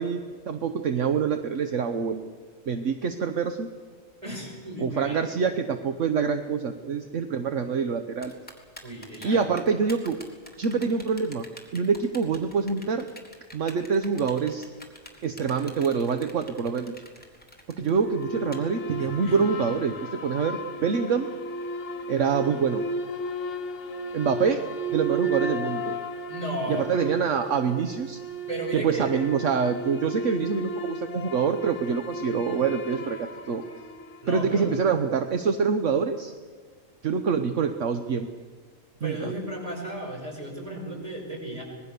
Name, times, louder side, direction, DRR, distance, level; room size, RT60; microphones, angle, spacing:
voice 1, 0.0-2.3 2.7-3.7 4.8-8.3 9.2-10.2 10.6-11.5 11.7-13.1 13.5-14.7 15.2-16.9 17.7-21.3 22.1-22.8 24.1-24.6 24.9-26.0 26.7-28.2 28.7-33.6 34.3-36.3 37.0-38.3 39.0-39.3, right 6 dB, 70° right, 8 dB, 1.3 m, -26 dB
voice 2, 4.2-5.3 8.8-9.4 19.0-19.5 26.3-27.1 28.5-29.2 34.2-34.8 39.0-41.6, right 1 dB, 25° right, -1 dB, 6.0 m, -34 dB
Typing, 8.2-18.6, left 1 dB, 5° left, 3.0 m, -46 dB
sound 1, 18.0-34.6, right 1 dB, 60° left, 1.3 m, -34 dB
25.5 x 20.5 x 6.8 m, 1.5 s
omnidirectional pair, 1.4 m